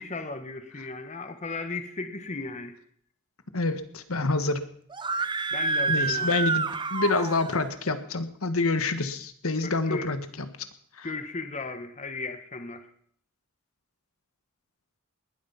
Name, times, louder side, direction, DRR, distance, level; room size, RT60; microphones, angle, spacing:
voice 1, 0.0-2.7 5.5-6.4 9.6-10.1 11.0-12.9, left 3 dB, 35° left, 8 dB, 1.4 m, -36 dB
voice 2, 3.5-4.6 5.2-5.3 5.9-10.2 11.0-11.1, left 3 dB, 85° left, 9 dB, 1.6 m, -27 dB
Screaming, 4.9-7.7, right 4 dB, 20° right, 0.7 m, -28 dB
20.0 x 12.0 x 5.8 m, 0.63 s
head